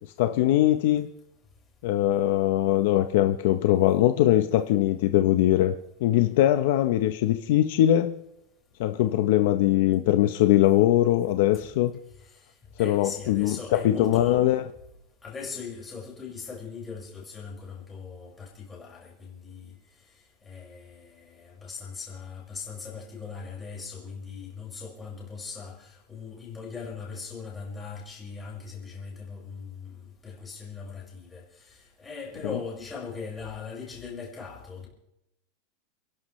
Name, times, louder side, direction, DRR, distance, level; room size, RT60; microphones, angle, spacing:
voice 1, 0.2-1.1 1.8-5.7 6.0-8.1 8.8-11.9 12.8-14.6, left 13 dB, 60° left, 0.8 m, -21 dB
voice 2, 12.8-14.6 15.2-19.7 20.4-30.0 30.2-34.9, left 5 dB, 10° left, 5.4 m, -39 dB
29.0 x 11.5 x 3.2 m
supercardioid pair, 170°, 0 cm